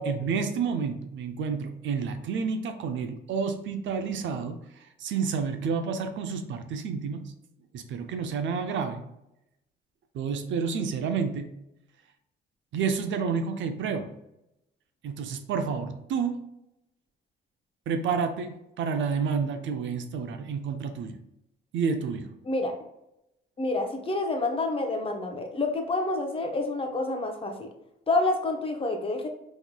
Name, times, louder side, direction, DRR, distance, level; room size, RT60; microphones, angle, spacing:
voice 1, 0.0-4.6 5.0-7.3 7.7-9.1 10.1-11.6 12.7-14.1 15.0-16.4 17.9-21.1 21.7-22.3, right 5 dB, 70° right, 7 dB, 0.5 m, -30 dB
voice 2, 22.4-22.7 23.6-27.7 28.1-29.3, left 2 dB, 30° left, 3 dB, 0.7 m, -28 dB
3.7 x 3.1 x 2.2 m, 0.85 s
cardioid pair, 90°, 20 cm